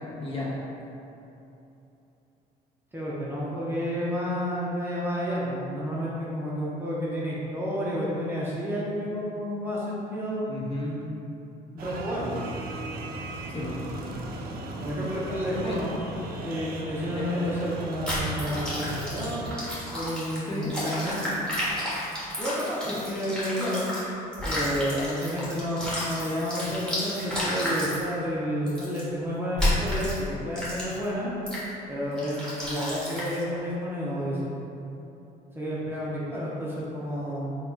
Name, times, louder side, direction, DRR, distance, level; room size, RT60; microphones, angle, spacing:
voice 1, 0.2-0.5 10.5-11.0 13.5-13.8 15.6-15.8 17.1-17.3 18.4-18.6 20.5-20.8 22.9-23.0, left 1 dB, 35° left, -6 dB, 1.0 m, -33 dB
voice 2, 2.9-10.4 11.7-12.4 14.8-16.0 16.4-19.6 19.9-21.3 22.4-23.9 24.4-31.3 31.9-34.4 35.5-37.6, equal, 10° right, -7 dB, 0.7 m, -30 dB
sound 1, 11.8-19.6, right 2 dB, 65° right, 0.5 m, -37 dB
sound 2, 18.1-24.0 24.3-28.0 28.7-29.0 29.6-30.2 30.6-31.0 31.5-31.7 32.2-33.4, left 1 dB, 5° left, 1.3 m, -31 dB
4.1 x 2.3 x 4.4 m, 3.0 s
cardioid pair, 110°, 17 cm